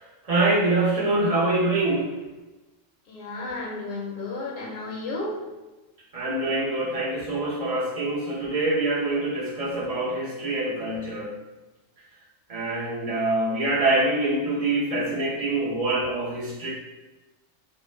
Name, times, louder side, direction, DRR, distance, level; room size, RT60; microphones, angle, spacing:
voice 1, 0.0-2.1 6.1-11.3 12.5-16.7, right 2 dB, 50° right, -6 dB, 0.4 m, -25 dB
voice 2, 3.1-5.4, left 2 dB, 75° left, -1 dB, 1.0 m, -33 dB
2.5 x 2.1 x 3.1 m, 1.1 s
omnidirectional pair, 1.4 m